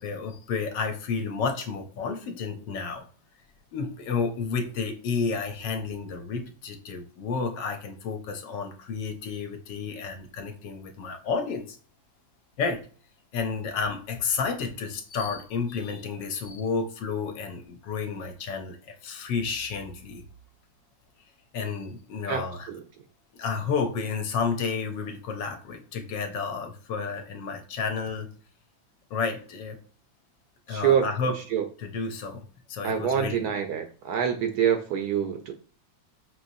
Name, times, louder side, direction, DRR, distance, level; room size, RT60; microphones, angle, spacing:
voice 1, 0.0-3.1 3.7-11.8 12.6-12.8 13.3-20.2 21.5-22.7 23.4-28.3 29.1-29.8 30.7-31.4 31.8-33.5, left 5 dB, 75° left, 6 dB, 1.3 m, -31 dB
voice 2, 30.7-31.1 31.5-31.6 32.8-35.5, right 8 dB, 70° right, 6 dB, 1.0 m, -25 dB
5.5 x 3.0 x 2.6 m, 0.42 s
omnidirectional pair, 2.0 m